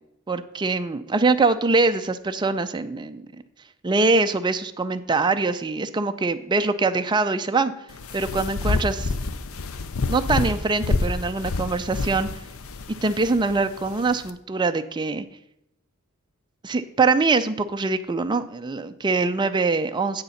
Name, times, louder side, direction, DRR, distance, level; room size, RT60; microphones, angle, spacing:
voice 1, 0.3-3.3 3.8-7.7 8.1-9.1 10.1-12.3 13.0-15.3 16.6-20.2, right 3 dB, 20° right, 8 dB, 0.4 m, -23 dB
sound 1, 7.9-14.3, left 3 dB, 65° left, 0.6 m, -28 dB
8.1 x 6.6 x 5.6 m, 0.82 s
head